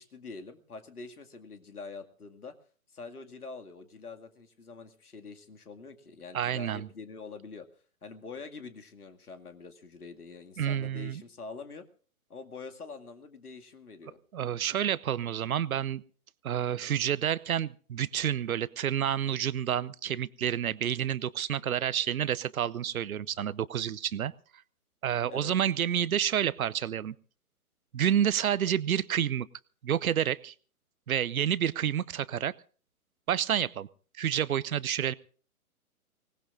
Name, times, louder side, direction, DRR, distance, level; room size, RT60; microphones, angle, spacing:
voice 1, 0.0-2.5 2.9-7.7 8.0-11.8 12.3-14.2 25.3-25.5, left 4 dB, 80° left, 7 dB, 2.2 m, -45 dB
voice 2, 6.3-6.9 10.6-11.2 14.3-16.0 16.4-24.3 25.0-27.1 27.9-29.5 29.8-30.5 31.1-32.5 33.3-33.9 34.2-35.1, right 9 dB, 65° right, 19 dB, 0.8 m, -29 dB
25.0 x 18.5 x 2.5 m, 0.42 s
figure-of-eight pair, 130°, 45 cm